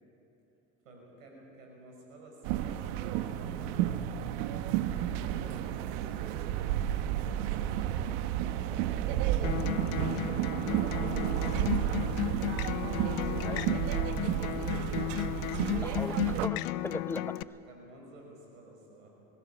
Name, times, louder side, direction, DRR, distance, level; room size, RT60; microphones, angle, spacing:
voice 1, 0.8-3.9 4.7-8.2 15.8-16.2 17.6-19.3, right 2 dB, 85° right, 0 dB, 6.2 m, -53 dB
sound 1, 2.4-16.5, right 11 dB, 70° right, 1.1 m, -31 dB
Acoustic guitar, 9.4-17.4, left 17 dB, 65° left, 0.7 m, -34 dB
voice 2, 13.4-13.8 15.8-17.4, left 2 dB, 5° left, 15 dB, 0.6 m, -39 dB
21.0 x 15.5 x 8.7 m, 3.0 s
hypercardioid pair, 80°, 39 cm